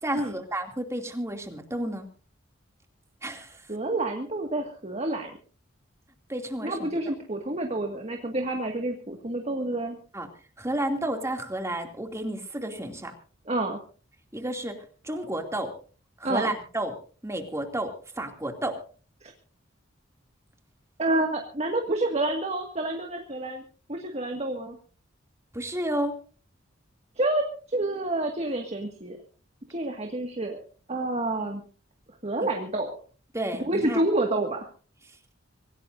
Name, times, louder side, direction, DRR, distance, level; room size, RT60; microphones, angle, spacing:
voice 1, 0.0-2.1 3.2-3.6 6.3-6.9 10.1-10.3 10.6-13.1 14.3-15.7 16.2-17.0 17.2-18.8 25.5-26.2 32.4-32.5 33.3-34.0, right 1 dB, 15° right, 4 dB, 2.7 m, -31 dB
voice 2, 3.7-5.4 6.6-10.0 13.5-13.8 16.2-16.5 21.0-23.6 23.9-24.8 27.2-29.2 29.7-30.6 30.9-31.6 32.2-33.0 33.6-34.7, right 2 dB, 35° right, 3 dB, 1.9 m, -28 dB
25.5 x 17.0 x 2.7 m, 0.39 s
head